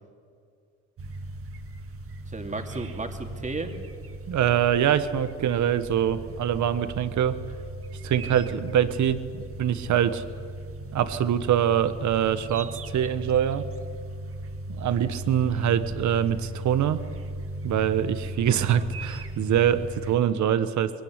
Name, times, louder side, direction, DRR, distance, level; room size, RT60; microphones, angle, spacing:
sound 1, 1.0-20.2, right 1 dB, 50° right, 1.7 m, -37 dB
voice 1, 2.3-3.7 15.4-15.8 18.5-18.9, right 3 dB, 25° right, 4 dB, 2.7 m, -35 dB
voice 2, 4.3-7.4 8.0-9.2 9.6-10.2 10.9-13.6 14.8-17.0 17.6-20.9, right 9 dB, 70° right, 12 dB, 1.3 m, -24 dB
21.5 x 17.0 x 9.9 m, 2.3 s
cardioid pair, 90°, 30 cm